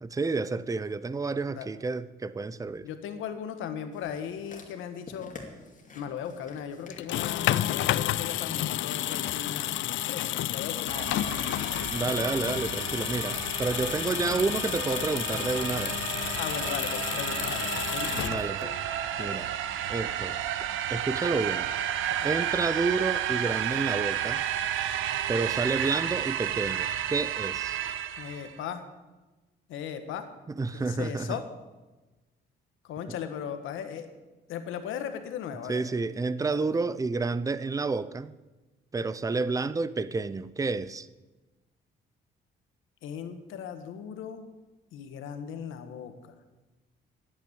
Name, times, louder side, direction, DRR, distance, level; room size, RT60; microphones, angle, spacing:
voice 1, 0.0-2.9 11.9-16.0 18.1-18.8 19.2-19.5 19.9-20.4 20.9-21.7 22.2-24.4 25.3-27.8 30.5-31.4 35.7-38.3 38.9-41.1, right 3 dB, 15° right, 16 dB, 0.5 m, -30 dB
voice 2, 2.8-5.4 5.9-11.4 16.3-18.1 19.2-19.5 22.2-22.3 28.2-28.8 29.7-30.3 30.7-31.4 32.9-34.1 34.5-35.8 36.5-36.7 43.0-44.5 44.9-46.1, left 8 dB, 90° left, 8 dB, 1.4 m, -37 dB
sound 1, 3.9-10.3 11.0-11.1, left 3 dB, 40° left, 2.5 m, -49 dB
sound 2, 6.9-18.8, left 14 dB, 75° left, 0.4 m, -31 dB
sound 3, 10.9-28.6, right 10 dB, 85° right, 0.8 m, -32 dB
10.5 x 8.8 x 8.6 m, 1.2 s
cardioid pair, 90°, 20 cm